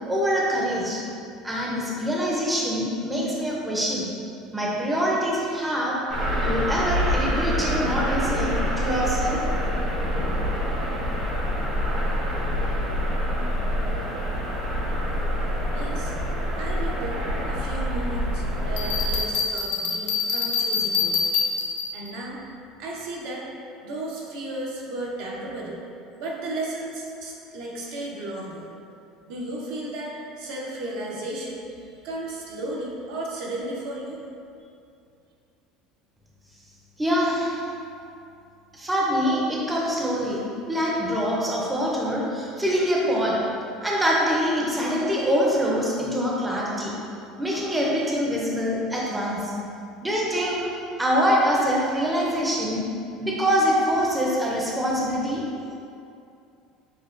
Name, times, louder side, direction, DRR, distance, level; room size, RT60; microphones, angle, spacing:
voice 1, 0.1-1.0 1.4-4.1 4.5-6.0 6.4-9.4 37.0-37.6 38.7-43.4 43.8-46.9 47.4-49.5 50.0-50.7 51.0-52.8 53.2-55.4, equal, 10° right, -5 dB, 0.5 m, -24 dB
sound 1, 6.1-19.2, equal, 50° right, 1.1 m, -26 dB
voice 2, 15.7-16.1 16.6-21.2 21.9-22.4 22.8-23.5 23.8-25.8 26.2-28.7 29.3-34.2, right 1 dB, 70° right, -3 dB, 0.8 m, -34 dB
Bell, 18.8-22.1, left 5 dB, 85° left, 0.5 m, -25 dB
6.2 x 2.1 x 2.5 m, 2.5 s
cardioid pair, 140°, 0 cm